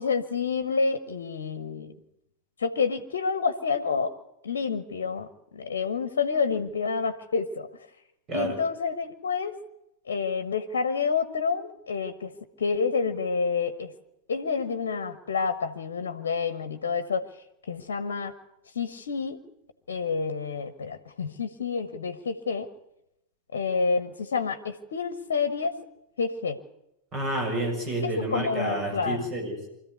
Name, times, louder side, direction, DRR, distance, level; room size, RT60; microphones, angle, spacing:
voice 1, 0.0-1.9 2.6-4.1 4.4-7.7 8.3-9.5 10.1-12.3 12.6-13.9 14.3-17.2 17.7-18.3 18.7-19.4 19.9-22.7 23.5-25.8 26.2-26.6 28.0-29.2, left 5 dB, 65° left, 11 dB, 1.2 m, -28 dB
voice 2, 27.1-29.7, right 1 dB, 30° right, 3 dB, 6.7 m, -29 dB
24.5 x 14.0 x 9.5 m, 0.87 s
figure-of-eight pair, 90°, 0 cm